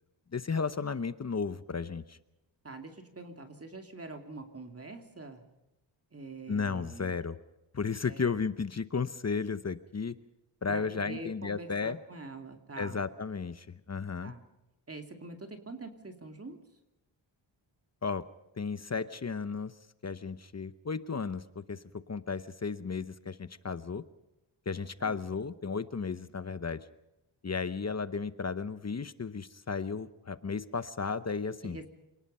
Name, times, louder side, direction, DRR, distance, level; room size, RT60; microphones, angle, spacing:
voice 1, 0.3-2.2 6.5-7.4 7.7-10.1 10.6-12.0 12.8-14.3 18.0-18.2 18.6-19.7 20.0-24.0 24.7-26.9 27.4-31.9, left 5 dB, 35° left, 13 dB, 0.9 m, -34 dB
voice 2, 2.6-5.4 6.1-7.1 8.0-8.2 10.7-13.0 14.2-14.4 14.9-16.6 25.0-25.2 31.6-31.9, right 2 dB, 30° right, 5 dB, 2.7 m, -45 dB
27.0 x 19.0 x 5.6 m, 0.94 s
wide cardioid pair, 120°, 47 cm